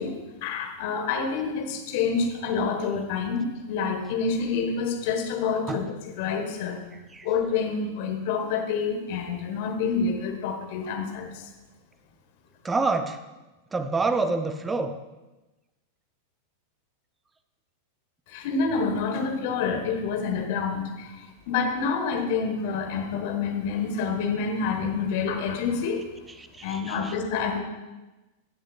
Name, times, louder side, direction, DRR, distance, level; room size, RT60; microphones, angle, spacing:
voice 1, 0.0-6.8 7.2-11.5 18.3-26.0 26.6-27.6, left 5 dB, 50° left, 3 dB, 1.5 m, -28 dB
voice 2, 12.6-13.2 13.7-15.0 26.6-27.1, right 3 dB, 15° right, 9 dB, 0.6 m, -27 dB
15.5 x 7.3 x 2.4 m, 1.1 s
figure-of-eight pair, 90°, 0 cm